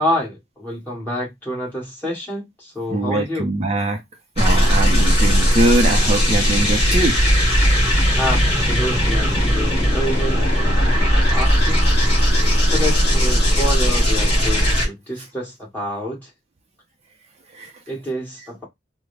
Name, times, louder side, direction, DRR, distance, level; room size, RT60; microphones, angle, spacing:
voice 1, 0.0-3.5 8.1-11.9 12.6-16.3 17.9-18.6, equal, 10° left, 1.6 m, -28 dB
voice 2, 2.9-4.0 4.4-7.2 17.5-17.7, right 2 dB, 35° right, 0.4 m, -22 dB
sound 1, 4.4-14.9, equal, 30° left, 2.0 m, -17 dB
3.6 x 2.0 x 3.2 m
head